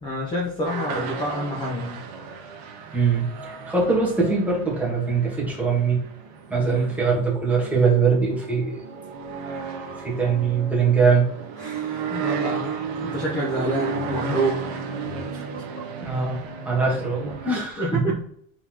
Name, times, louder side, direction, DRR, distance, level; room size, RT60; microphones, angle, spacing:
voice 1, 0.0-2.0 6.6-6.9 11.6-12.7 13.1-14.6 15.3-15.6 17.8-17.9, right 1 dB, 10° left, -3 dB, 0.7 m, -28 dB
sound 1, 0.6-17.6, right 5 dB, 45° right, 1.1 m, -33 dB
voice 2, 2.9-6.0 6.5-8.8 10.0-11.2 16.0-16.4 16.6-18.0, right 5 dB, 5° right, -4 dB, 1.3 m, -22 dB
4.1 x 3.9 x 2.9 m, 0.67 s
supercardioid pair, 155°, 40 cm